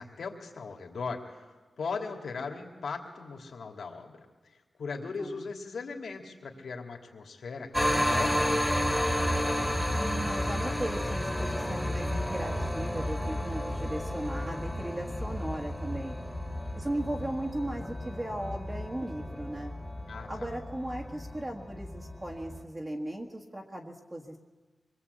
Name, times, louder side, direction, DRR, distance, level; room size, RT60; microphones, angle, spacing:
voice 1, 0.0-4.3 4.8-9.2 20.1-20.5, left 4 dB, 70° left, 2 dB, 2.8 m, -39 dB
sound 1, 7.7-22.6, equal, ahead, 1.8 m, -32 dB
voice 2, 9.9-16.1 16.7-19.7 20.3-24.4, right 1 dB, 20° right, -2 dB, 1.6 m, -37 dB
25.5 x 22.0 x 8.4 m, 1.3 s
wide cardioid pair, 165°, 0 cm